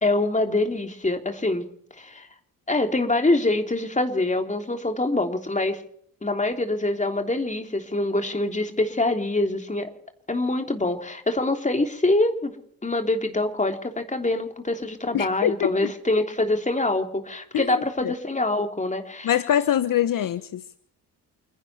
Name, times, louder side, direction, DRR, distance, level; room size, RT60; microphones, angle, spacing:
voice 1, 0.0-1.7 2.0-2.3 2.7-5.8 6.2-9.9 10.3-12.5 12.8-19.3, left 2 dB, 20° left, 5 dB, 3.4 m, -25 dB
voice 2, 15.1-15.9 17.5-17.7 18.0-18.1 19.2-20.6, left 10 dB, 60° left, 14 dB, 1.0 m, -23 dB
29.0 x 11.0 x 4.5 m, 0.66 s
supercardioid pair, 65°, 38 cm